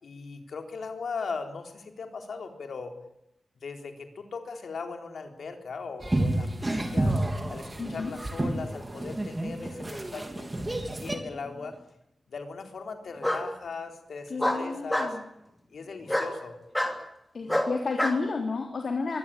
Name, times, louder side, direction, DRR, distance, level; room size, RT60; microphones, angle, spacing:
voice 1, 0.0-3.0 3.6-7.2 7.5-11.8 12.3-15.2 15.7-16.6, left 4 dB, 75° left, 5 dB, 3.9 m, -39 dB
sound 1, 6.0-11.2, right 1 dB, 20° right, 3.3 m, -30 dB
voice 2, 7.8-8.1 14.3-15.3 17.3-19.2, left 4 dB, 55° left, 3 dB, 3.3 m, -31 dB
Bark, 11.1-11.7 13.2-13.4 14.4-15.1 16.1-16.3 16.7-17.0 17.5-18.2, left 1 dB, 10° left, 3.2 m, -27 dB
24.0 x 18.0 x 9.0 m, 0.84 s
wide cardioid pair, 165°, 0 cm